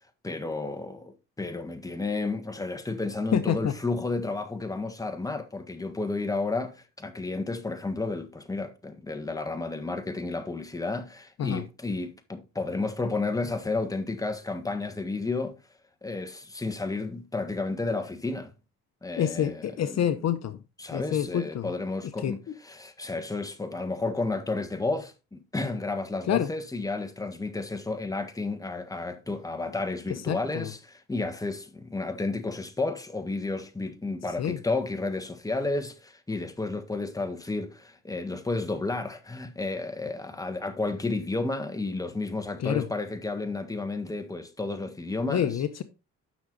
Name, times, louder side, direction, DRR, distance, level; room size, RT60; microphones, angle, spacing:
voice 1, 0.2-15.6 16.0-18.5 19.0-20.2 20.8-45.6, left 3 dB, 10° left, 1.6 m, -32 dB
voice 2, 3.3-3.7 11.4-11.6 19.2-20.6 20.9-21.7 22.2-22.3 26.3-26.5 30.3-30.7 34.4-34.6 42.6-42.9 45.3-45.8, left 10 dB, 60° left, 0.8 m, -27 dB
9.4 x 6.3 x 3.9 m
cardioid pair, 90°, 30 cm